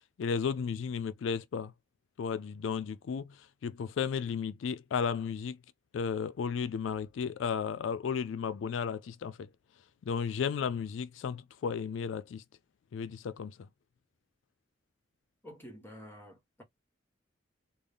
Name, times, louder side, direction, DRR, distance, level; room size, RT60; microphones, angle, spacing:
voice 1, 0.2-1.7 2.2-5.6 5.9-9.5 10.0-12.4 12.9-13.6, left 6 dB, 85° left, 0.3 m, -34 dB
voice 2, 15.4-16.6, equal, 10° left, 1.7 m, -49 dB
3.7 x 2.3 x 3.4 m
head